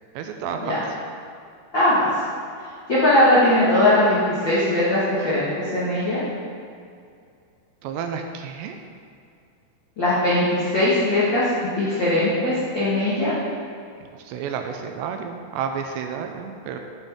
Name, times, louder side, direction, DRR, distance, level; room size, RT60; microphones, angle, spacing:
voice 1, 0.2-0.6 7.8-8.8 14.3-16.8, right 7 dB, 85° right, 5 dB, 2.7 m, -30 dB
voice 2, 1.7-2.1 2.9-6.2 10.0-13.3, left 1 dB, 70° left, -10 dB, 1.1 m, -20 dB
9.4 x 9.0 x 3.7 m, 2.4 s
omnidirectional pair, 5.2 m